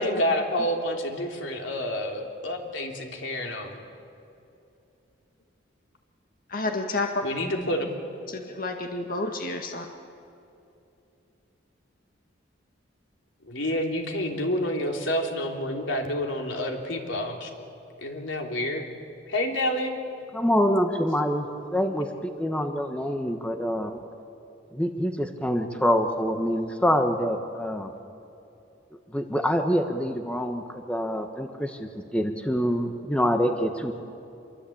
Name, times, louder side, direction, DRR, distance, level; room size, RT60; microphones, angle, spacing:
voice 1, 0.0-3.8 7.2-7.9 13.4-17.5 18.0-18.8 19.3-20.0, left 1 dB, 80° left, 2 dB, 3.3 m, -28 dB
voice 2, 6.5-7.1 8.3-9.9, left 3 dB, 45° left, 3 dB, 1.8 m, -30 dB
voice 3, 20.3-24.0 24.7-27.9 29.1-34.0, equal, 5° left, 5 dB, 1.2 m, -26 dB
27.0 x 23.5 x 8.7 m, 2.8 s
head